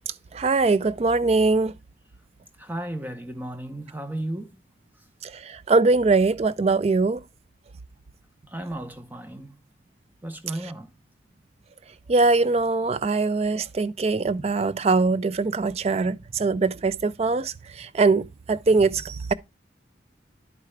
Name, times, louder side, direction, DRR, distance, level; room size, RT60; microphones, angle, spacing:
voice 1, 0.3-1.7 5.2-7.2 12.1-19.3, right 3 dB, 30° right, 0.3 m, -22 dB
voice 2, 2.6-4.6 8.5-9.6 10.2-10.9, right 1 dB, 10° right, 0.7 m, -34 dB
10.5 x 4.7 x 3.2 m
head